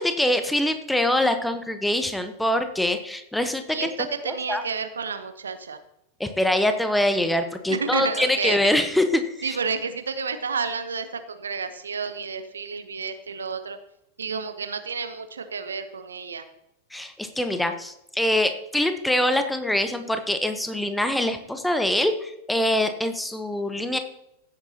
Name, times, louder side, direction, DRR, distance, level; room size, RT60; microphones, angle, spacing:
voice 1, 0.0-3.9 4.2-4.6 6.2-9.6 16.9-24.0, left 1 dB, 5° left, 8 dB, 1.0 m, -24 dB
voice 2, 3.7-5.8 7.7-8.9 9.4-13.8 14.2-16.4, right 5 dB, 70° right, 10 dB, 0.9 m, -30 dB
15.5 x 8.5 x 2.9 m, 0.80 s
figure-of-eight pair, 90°, 0 cm